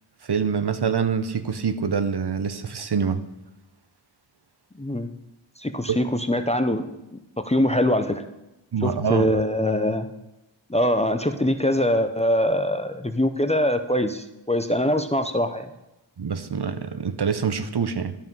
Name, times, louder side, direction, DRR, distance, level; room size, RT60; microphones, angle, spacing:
voice 1, 0.2-3.2 5.9-6.0 8.7-9.2 16.2-18.1, right 6 dB, 55° right, 10 dB, 0.8 m, -25 dB
voice 2, 4.8-5.1 5.6-6.8 7.1-8.2 8.8-10.1 10.7-15.7, left 1 dB, 15° left, 8 dB, 0.6 m, -23 dB
12.0 x 5.3 x 5.4 m, 0.95 s
wide cardioid pair, 65°, 47 cm